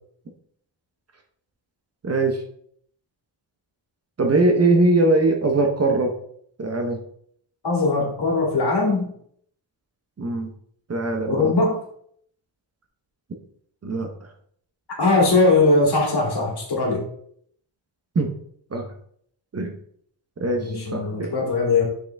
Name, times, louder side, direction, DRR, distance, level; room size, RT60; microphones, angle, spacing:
voice 1, 2.0-2.4 4.2-6.1 6.6-7.0 10.2-10.5 10.9-11.5 13.8-14.3 18.1-18.3 18.7-18.9 19.5-19.8 20.4-21.3, right 2 dB, 30° right, 3 dB, 0.7 m, -21 dB
voice 2, 7.6-9.1 11.3-11.8 15.0-17.0 20.6-21.8, left 3 dB, 55° left, -1 dB, 2.2 m, -20 dB
6.4 x 5.6 x 3.3 m, 0.65 s
wide cardioid pair, 170°, 47 cm